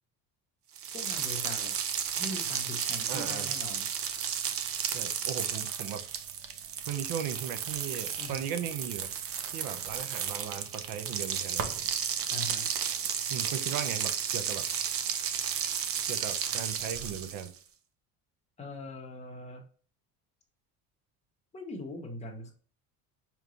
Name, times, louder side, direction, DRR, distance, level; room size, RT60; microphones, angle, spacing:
sound 1, 0.8-17.6, right 8 dB, 40° right, 0.5 m, -33 dB
voice 1, 0.9-1.8 2.2-3.9 6.9-7.0 8.2-8.5 12.3-12.7 18.6-19.6 21.5-22.5, left 1 dB, 20° left, 1 dB, 0.9 m, -41 dB
voice 2, 3.1-3.6 4.9-6.0 6.9-9.1 9.5-11.7 13.3-14.6 16.1-17.5, right 9 dB, 85° right, 9 dB, 0.8 m, -37 dB
5.2 x 3.1 x 2.5 m, 0.42 s
cardioid pair, 155°, 37 cm